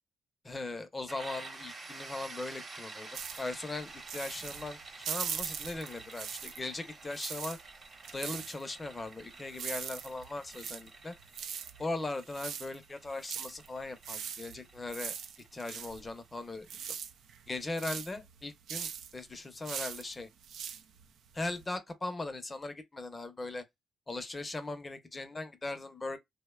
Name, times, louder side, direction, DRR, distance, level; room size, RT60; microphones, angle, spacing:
voice 1, 0.4-7.6 8.1-11.1 11.8-15.2 15.5-16.7 17.5-20.3 21.3-23.6 24.1-26.2, left 2 dB, 25° left, 0.7 m, -39 dB
sound 1, 1.1-16.7, right 3 dB, 35° right, 0.9 m, -50 dB
sound 2, 3.1-6.7 7.0-21.7, right 8 dB, 70° right, 0.4 m, -41 dB
2.7 x 2.1 x 2.2 m
cardioid pair, 90°, 0 cm